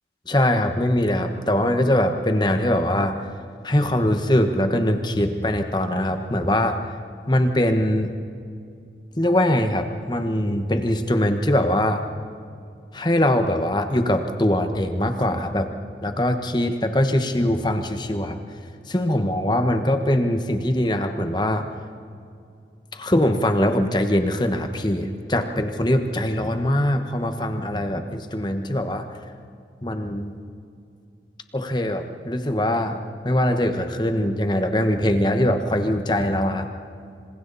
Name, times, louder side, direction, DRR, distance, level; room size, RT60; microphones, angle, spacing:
voice 1, 0.3-3.2 3.6-6.9 7.3-8.1 9.2-12.0 12.9-15.7 16.0-18.4 18.9-21.7 22.9-29.1 29.8-30.4 31.5-36.7, left 1 dB, 25° left, 6 dB, 1.4 m, -22 dB
27.5 x 26.5 x 4.3 m, 2.4 s
head